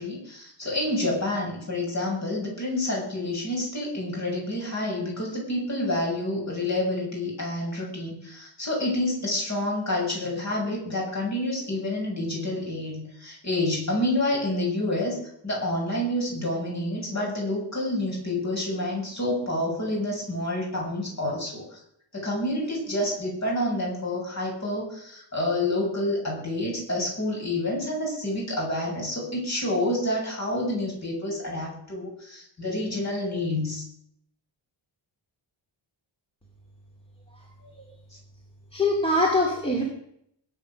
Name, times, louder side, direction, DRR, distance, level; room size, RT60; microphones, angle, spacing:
voice 1, 0.0-21.8 22.1-33.8, left 1 dB, 30° left, -2 dB, 7.5 m, -28 dB
voice 2, 38.7-39.8, left 1 dB, 10° left, -1 dB, 2.7 m, -23 dB
20.5 x 9.2 x 6.5 m, 0.72 s
wide cardioid pair, 160°, 50 cm